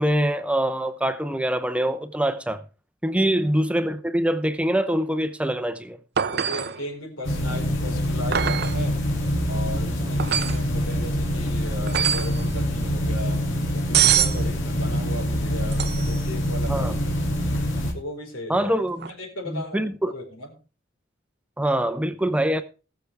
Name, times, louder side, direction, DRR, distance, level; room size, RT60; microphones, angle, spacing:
voice 1, 0.0-2.6 3.0-6.0 16.7-17.0 18.5-19.1 19.5-20.1 21.6-22.6, right 1 dB, 5° right, 0.7 m, -24 dB
voice 2, 6.2-9.1 9.5-13.4 13.7-17.3 17.9-18.7 19.1-20.5, left 1 dB, 90° left, 4.8 m, -36 dB
sound 1, 6.2-6.8 8.3-8.8 10.2-10.6 11.9-12.4 13.9-14.4 15.7-16.2 19.0-19.1, right 9 dB, 55° right, 0.6 m, -23 dB
sound 2, 7.2-17.9, equal, 70° left, 2.7 m, -25 dB
20.0 x 6.8 x 3.5 m
head